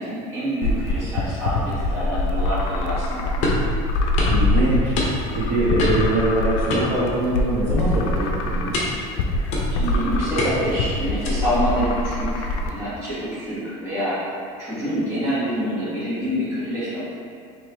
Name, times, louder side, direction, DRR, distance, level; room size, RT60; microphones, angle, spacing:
voice 1, 0.0-3.3 9.7-14.2 14.6-17.0, equal, 15° right, -11 dB, 1.5 m, -26 dB
sound 1, 0.6-12.7, left 2 dB, 75° left, 0.5 m, -24 dB
sound 2, 3.4-3.7 4.2-4.4 5.0-5.4 5.8-6.1 6.7-7.5 7.8-8.0 8.7-9.1 9.5-9.9 10.4-10.8 11.2-11.6, left 2 dB, 45° left, 0.8 m, -26 dB
voice 2, 4.3-5.0 5.3-8.7, right 2 dB, 50° right, -8 dB, 1.0 m, -23 dB
4.7 x 2.9 x 3.2 m, 2.4 s
cardioid pair, 170°, 16 cm